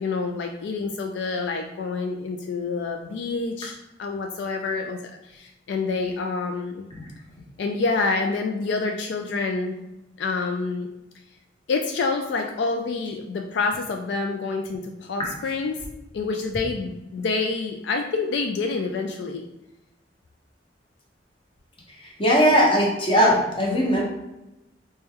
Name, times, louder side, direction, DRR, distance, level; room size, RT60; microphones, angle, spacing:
voice 1, 0.0-5.0 5.2-6.8 7.6-9.8 10.2-10.9 11.7-15.8 16.1-19.4, left 4 dB, 70° left, 3 dB, 0.3 m, -27 dB
voice 2, 22.2-24.0, equal, 30° left, -3 dB, 0.9 m, -19 dB
4.2 x 2.2 x 3.5 m, 0.93 s
head